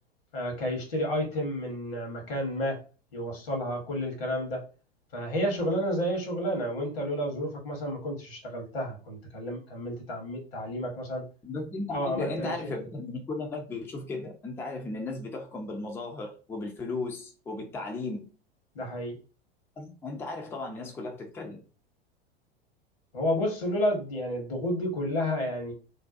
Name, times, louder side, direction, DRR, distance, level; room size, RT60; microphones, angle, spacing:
voice 1, 0.3-2.8 3.1-4.6 5.1-11.2 11.9-12.7 18.7-19.2 23.1-25.7, equal, 65° left, 1.0 m, -31 dB
voice 2, 11.4-18.3 19.8-21.6, left 3 dB, 10° left, 0.4 m, -36 dB
2.6 x 2.1 x 2.4 m
figure-of-eight pair, 85°, 31 cm